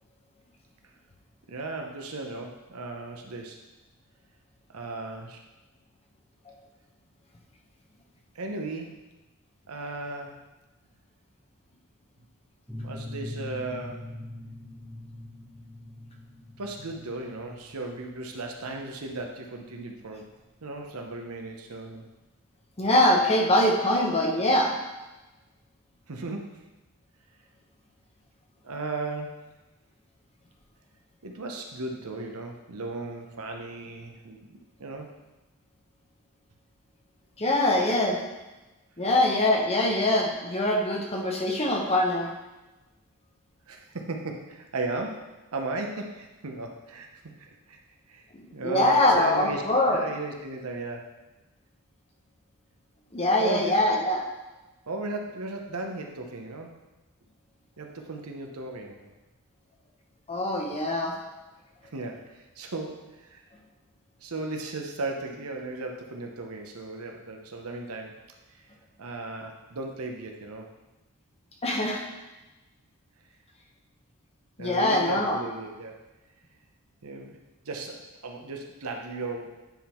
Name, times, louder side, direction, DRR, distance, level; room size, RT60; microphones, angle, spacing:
voice 1, 1.5-3.6 4.7-5.4 8.3-9.0 9.7-10.4 12.8-14.1 16.6-20.3 20.6-22.1 26.1-26.6 28.6-29.5 31.2-35.1 43.7-47.1 47.4-47.8 48.1-48.2 48.5-51.1 53.3-54.0 54.9-56.8 57.8-59.1 61.8-63.5 64.2-68.2 68.5-68.6 69.0-70.7 74.6-76.0 77.0-77.4 77.6-79.6, right 2 dB, 75° right, 2 dB, 0.9 m, -36 dB
sound 1, 12.7-22.1, left 1 dB, ahead, 0.9 m, -43 dB
voice 2, 22.8-24.8 37.4-38.2 39.0-42.3 48.6-50.0 53.1-54.2 60.3-61.2 71.6-72.0 74.6-75.4, left 1 dB, 30° left, 0 dB, 1.0 m, -23 dB
9.1 x 3.8 x 4.5 m, 1.1 s
head